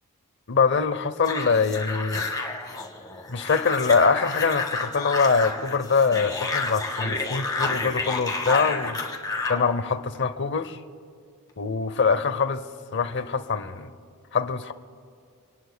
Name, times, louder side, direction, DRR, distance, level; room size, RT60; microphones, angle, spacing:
voice 1, 0.5-2.2 3.3-9.0 9.5-10.8 11.6-12.6 12.9-13.9 14.3-14.7, left 5 dB, 55° left, 0.7 m, -23 dB
sound 1, 1.2-9.6, left 3 dB, 15° left, 1.7 m, -30 dB
26.5 x 19.5 x 2.3 m
head